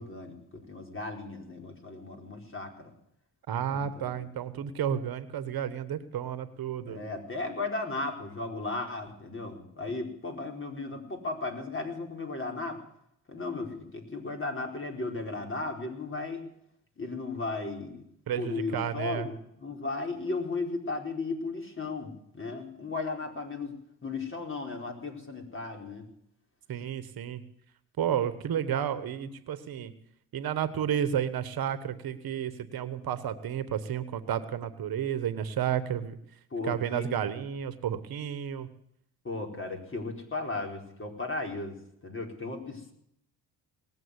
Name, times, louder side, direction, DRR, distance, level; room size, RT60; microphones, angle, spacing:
voice 1, 0.0-2.9 3.7-4.2 6.8-12.8 13.3-16.4 17.0-18.0 18.4-19.3 19.6-26.1 36.5-37.1 39.2-41.7 42.0-42.9, left 3 dB, 30° left, 2 dB, 4.5 m, -35 dB
voice 2, 3.5-7.0 18.3-19.3 26.7-27.4 28.0-29.9 30.3-36.2 36.6-38.7, right 9 dB, 60° right, 12 dB, 1.4 m, -31 dB
19.0 x 7.7 x 9.7 m, 0.73 s
supercardioid pair, 65°, 40 cm